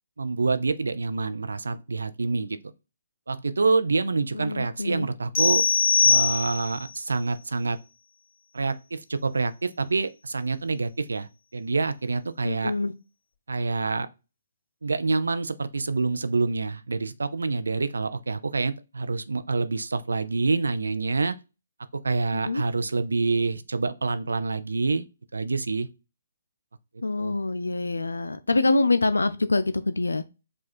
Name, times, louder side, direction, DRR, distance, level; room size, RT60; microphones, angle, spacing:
voice 1, 0.2-2.6 3.3-5.6 6.0-7.8 8.5-12.7 13.5-14.1 14.8-21.3 22.0-25.0 25.3-25.9 27.2-27.4, right 3 dB, 80° right, 0.5 m, -27 dB
voice 2, 4.3-5.1 12.4-12.9 22.3-22.6 27.0-30.2, left 3 dB, 85° left, 0.4 m, -25 dB
sound 1, 5.3-6.9, left 5 dB, 40° left, 1.7 m, -21 dB
5.1 x 2.4 x 4.2 m
figure-of-eight pair, 140°, 0 cm